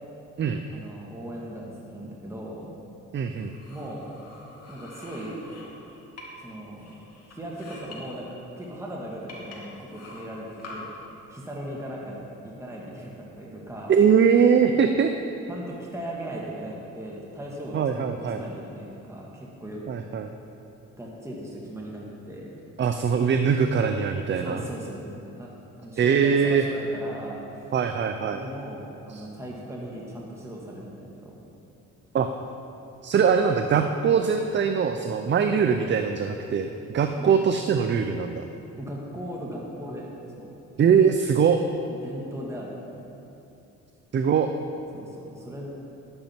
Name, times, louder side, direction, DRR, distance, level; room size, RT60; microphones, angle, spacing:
voice 1, 0.7-2.7 3.7-4.1 4.7-5.4 6.4-6.9 7.3-8.3 8.6-10.9 11.3-12.2 12.6-13.9 15.5-19.9 21.0-22.5 24.4-25.1 25.4-25.5 25.8-27.7 28.3-31.4 37.2-37.4 38.8-40.1 40.4-40.6 41.9-42.8 44.9-45.7, equal, 10° right, -4 dB, 1.7 m, -38 dB
voice 2, 3.1-3.5 13.9-15.1 17.7-18.4 19.9-20.3 22.8-24.6 26.0-26.6 27.7-28.4 29.1-29.2 32.1-32.3 33.0-38.5 40.8-41.6 44.1-44.5, right 6 dB, 40° right, 7 dB, 0.5 m, -22 dB
sound 1, 3.3-6.5 6.8-8.0 8.6-8.7 9.3-10.8, left 3 dB, 55° left, 2.3 m, -46 dB
11.5 x 8.9 x 4.4 m, 2.8 s
cardioid pair, 90°, 30 cm